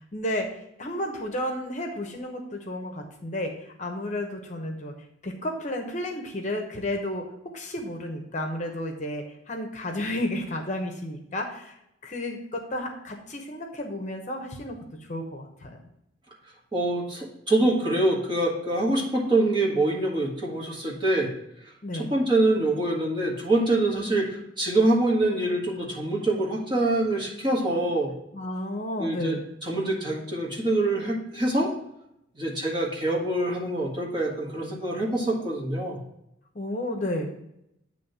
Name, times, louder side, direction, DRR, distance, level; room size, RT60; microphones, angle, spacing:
voice 1, 0.1-0.5 0.8-4.9 5.2-7.3 7.5-11.7 12.0-14.8 15.1-15.8 21.8-22.1 28.3-29.4 36.5-37.3, left 1 dB, 40° left, 3 dB, 0.9 m, -32 dB
voice 2, 16.7-21.3 21.9-28.1 29.0-31.7 32.4-36.0, right 2 dB, 25° right, -3 dB, 1.5 m, -25 dB
8.8 x 3.1 x 5.4 m, 0.80 s
head